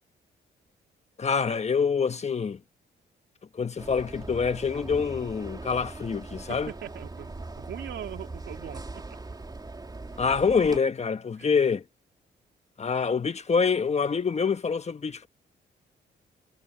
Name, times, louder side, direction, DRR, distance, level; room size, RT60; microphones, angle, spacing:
voice 1, 1.2-2.6 3.5-6.7 10.2-11.8 12.8-15.3, left 5 dB, 35° left, 1.4 m, -26 dB
sound 1, 3.8-10.8, right 3 dB, 20° right, 3.2 m, -41 dB
sound 2, 4.7-7.0, equal, ahead, 3.2 m, -46 dB
voice 2, 6.4-9.2 10.1-10.2 11.4-11.6, right 10 dB, 75° right, 2.6 m, -41 dB
cardioid pair, 80°, 18 cm